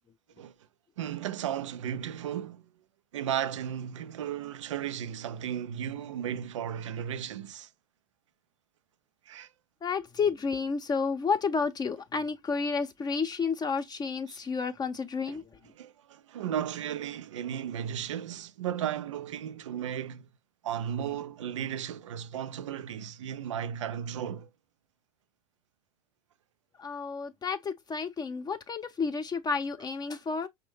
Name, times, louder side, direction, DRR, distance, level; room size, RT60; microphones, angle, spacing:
voice 1, 1.0-2.7 3.1-7.7 9.3-9.5 14.3-14.4 15.3-15.4 15.7-20.3 20.6-24.5, right 9 dB, 85° right, 0.4 m, -35 dB
voice 2, 9.8-15.4 26.8-30.5, left 5 dB, 25° left, 0.6 m, -31 dB
5.3 x 2.2 x 3.2 m
hypercardioid pair, 80°, 15 cm